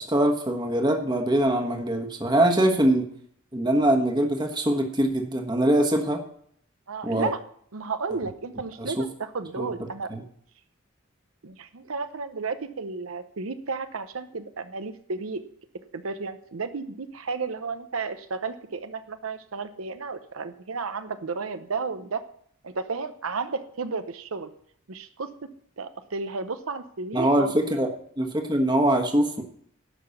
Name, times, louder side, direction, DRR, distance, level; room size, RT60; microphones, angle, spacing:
voice 1, 0.0-3.1 3.5-6.2 7.0-7.3 8.8-8.9 9.6-9.7 10.1-10.2 27.1-27.9 28.2-29.4, right 1 dB, 20° right, 4 dB, 1.3 m, -23 dB
voice 2, 6.9-7.4 7.7-10.1 11.4-15.4 15.9-22.3 22.6-24.5 24.9-25.3 25.8-27.5, right 4 dB, 90° right, 9 dB, 0.8 m, -33 dB
11.5 x 5.9 x 7.0 m, 0.63 s
head